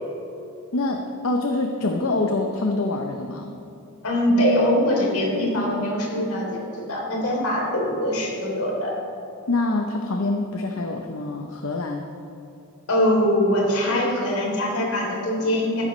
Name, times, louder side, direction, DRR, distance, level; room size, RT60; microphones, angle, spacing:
voice 1, 0.7-3.6 9.5-12.1, left 2 dB, 70° left, 3 dB, 0.7 m, -25 dB
voice 2, 4.0-6.6 6.9-9.0 12.9-15.8, left 1 dB, 85° left, -2 dB, 3.3 m, -22 dB
14.5 x 13.5 x 3.2 m, 2.7 s
head